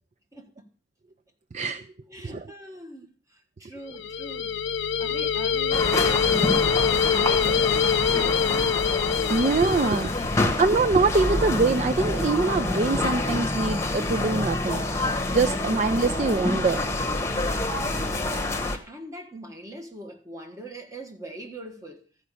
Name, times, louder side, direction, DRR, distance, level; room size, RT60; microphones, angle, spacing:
voice 1, 0.3-0.7 2.1-4.6 5.0-8.8 17.3-22.0, right 1 dB, 20° right, 1.7 m, -42 dB
sound 1, 3.9-10.3, left 7 dB, 85° left, 0.6 m, -24 dB
sound 2, 5.7-18.8, left 2 dB, 15° left, 1.3 m, -27 dB
voice 2, 9.3-14.8 15.3-16.8, right 3 dB, 40° right, 0.4 m, -24 dB
13.5 x 5.1 x 8.3 m
head